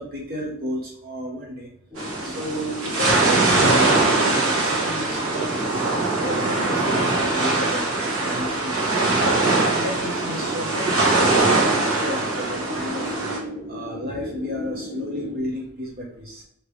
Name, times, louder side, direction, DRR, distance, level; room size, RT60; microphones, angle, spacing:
voice 1, 0.0-1.7 2.2-5.8 6.2-9.3 9.7-13.1 13.7-16.4, left 1 dB, 45° right, -1 dB, 0.8 m, -32 dB
sound 1, 1.9-15.4, left 1 dB, 15° right, 0.8 m, -36 dB
sound 2, 2.0-13.4, right 3 dB, 85° right, 1.2 m, -22 dB
5.0 x 2.8 x 3.1 m, 0.70 s
head